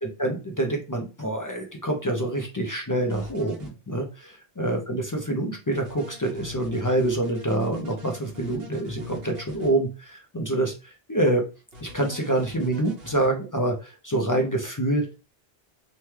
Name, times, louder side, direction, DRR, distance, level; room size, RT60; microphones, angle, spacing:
voice 1, 0.0-11.5 11.8-15.1, right 1 dB, 30° left, 1 dB, 0.4 m, -26 dB
sound 1, 3.1-3.7 5.7-9.7 11.7-13.3, left 2 dB, 70° right, 1.1 m, -43 dB
3.0 x 2.2 x 3.2 m, 0.32 s
omnidirectional pair, 1.0 m